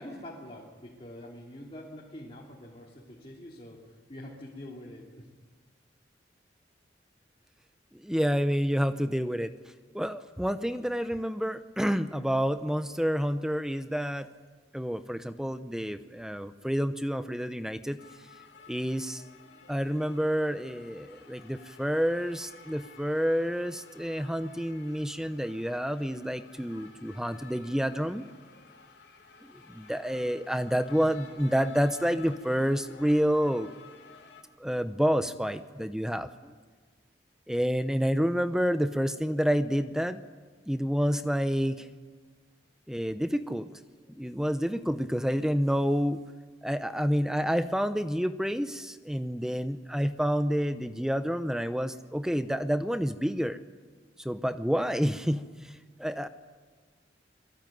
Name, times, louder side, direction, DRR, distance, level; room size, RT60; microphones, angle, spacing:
voice 1, 0.0-5.3, left 1 dB, 30° left, -3 dB, 3.3 m, -45 dB
voice 2, 7.9-9.5 9.9-14.3 14.7-18.0 18.7-19.2 19.7-28.3 29.4-33.7 34.6-36.5 37.5-40.2 40.7-41.9 42.9-43.7 44.1-46.2 46.6-53.6 54.2-55.7 56.0-56.3, equal, 5° right, 10 dB, 0.8 m, -29 dB
sound 1, 18.0-34.4, left 5 dB, 60° left, 3.6 m, -53 dB
26.0 x 21.5 x 9.3 m, 1.4 s
head